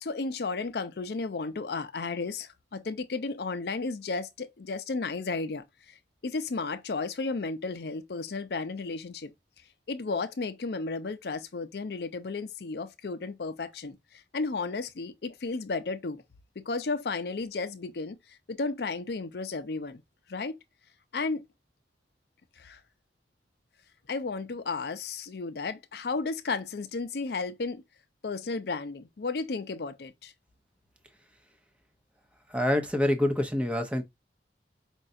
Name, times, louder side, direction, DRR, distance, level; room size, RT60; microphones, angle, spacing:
voice 1, 0.0-6.0 6.2-9.3 9.9-16.2 16.6-20.0 20.3-20.6 21.1-21.5 22.6-22.8 24.1-27.8 28.2-30.3, left 3 dB, 65° left, 0.5 m, -33 dB
voice 2, 32.5-34.0, left 1 dB, 5° right, 0.7 m, -26 dB
5.3 x 2.3 x 2.6 m
head